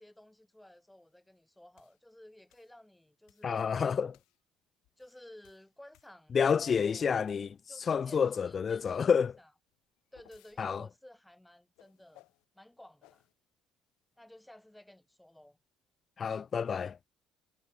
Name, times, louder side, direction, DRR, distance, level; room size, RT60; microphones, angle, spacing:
voice 1, 0.0-3.8 5.0-7.2 7.7-9.1 9.4-9.5 10.1-12.3 12.5-13.3 14.2-15.6, left 1 dB, 5° left, 3.3 m, -55 dB
sound 1, 1.8-2.0 2.5-2.8 3.3-3.6 4.1-4.4 4.8-6.8 7.2-7.8 9.7-10.6 11.8-12.4 13.0-13.3, left 21 dB, 80° left, 5.4 m, -65 dB
voice 2, 3.4-4.2 6.3-7.5 7.9-9.4 10.6-10.8 16.2-17.0, left 6 dB, 25° left, 0.3 m, -29 dB
cardioid pair, 175°, 0 cm